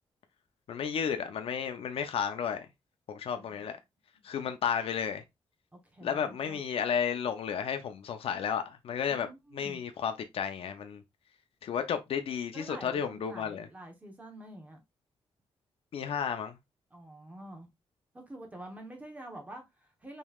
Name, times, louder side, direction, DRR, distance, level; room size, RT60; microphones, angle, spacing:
voice 1, 0.7-2.7 3.1-3.8 4.2-5.2 6.0-9.3 9.5-11.0 11.6-13.7 15.9-16.6, left 7 dB, 65° left, 0.7 m, -32 dB
voice 2, 5.7-6.6 9.0-9.8 12.5-14.8 16.9-17.7 18.1-20.2, right 1 dB, 15° right, 1.0 m, -47 dB
5.3 x 3.2 x 2.4 m
wide cardioid pair, 175°, 10 cm